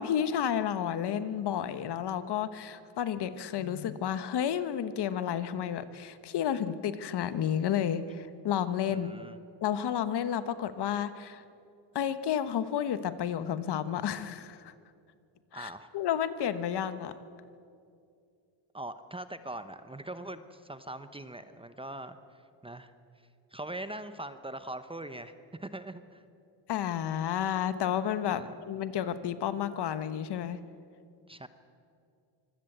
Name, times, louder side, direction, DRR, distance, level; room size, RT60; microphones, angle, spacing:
voice 1, 0.0-9.1 9.6-11.4 11.9-14.7 15.5-17.1 26.7-30.6, left 9 dB, 55° left, 13 dB, 1.2 m, -31 dB
voice 2, 8.9-9.4 15.5-15.9 18.7-22.9 23.5-26.2 28.3-28.5 31.3-31.5, right 1 dB, 10° right, 11 dB, 0.9 m, -42 dB
25.0 x 16.5 x 8.0 m, 2.4 s
cardioid pair, 115°, 47 cm